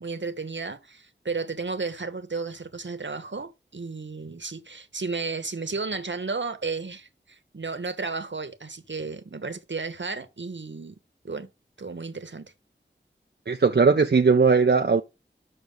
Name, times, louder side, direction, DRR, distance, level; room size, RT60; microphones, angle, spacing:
voice 1, 0.0-11.0 11.2-11.5 11.8-12.5, right 4 dB, 75° right, 1.1 m, -33 dB
voice 2, 13.5-15.0, right 4 dB, 60° right, 0.6 m, -19 dB
6.8 x 6.0 x 3.8 m
wide cardioid pair, 45°, 19 cm